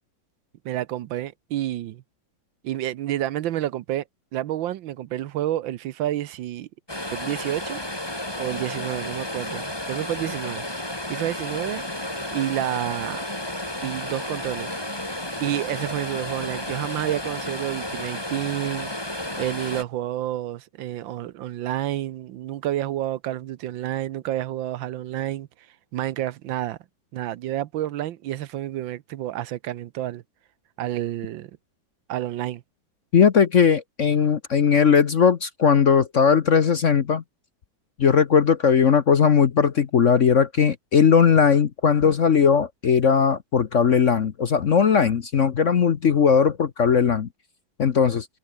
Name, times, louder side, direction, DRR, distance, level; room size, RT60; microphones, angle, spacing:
voice 1, 0.6-2.0 2.6-4.0 4.3-6.7 7.1-7.8 8.4-10.6 11.1-11.8 12.3-13.2 13.8-14.8 15.4-25.5 25.9-26.8 27.1-30.2 30.8-31.5 32.1-32.6, right 13 dB, 75° right, 1.5 m, -29 dB
sound 1, 6.9-19.8, left 1 dB, 10° left, 4.0 m, -32 dB
voice 2, 33.1-37.2 38.0-47.3 47.8-48.3, left 6 dB, 50° left, 1.0 m, -18 dB
omnidirectional pair, 2.2 m